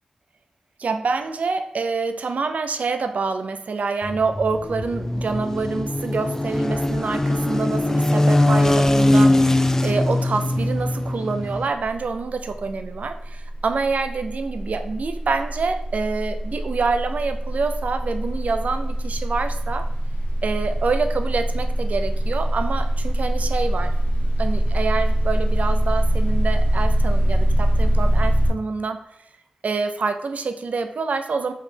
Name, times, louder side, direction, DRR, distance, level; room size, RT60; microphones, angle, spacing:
voice 1, 0.8-19.9 20.4-24.0 24.4-29.0 29.6-31.5, right 4 dB, 80° right, 8 dB, 0.4 m, -26 dB
sound 1, 4.0-11.7, left 1 dB, 20° left, 0.3 m, -21 dB
sound 2, 11.7-12.1 12.4-28.5, right 1 dB, 85° left, 0.9 m, -23 dB
4.7 x 3.1 x 3.3 m, 0.79 s
wide cardioid pair, 65°, 2 cm